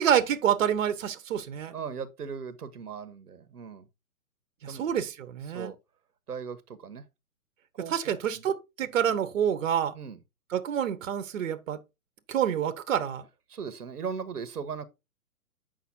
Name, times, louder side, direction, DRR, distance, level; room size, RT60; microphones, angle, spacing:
voice 1, 0.0-1.7 4.6-5.7 7.9-9.9 10.5-11.8 12.3-13.2, right 9 dB, 55° right, 1.2 m, -27 dB
voice 2, 1.7-3.8 4.7-4.9 5.5-5.8 6.3-6.6 6.8-7.0 7.8-8.1 9.9-10.2 13.5-14.8, right 6 dB, 85° right, 1.2 m, -37 dB
8.5 x 5.6 x 2.7 m
hypercardioid pair, 140°, 45 cm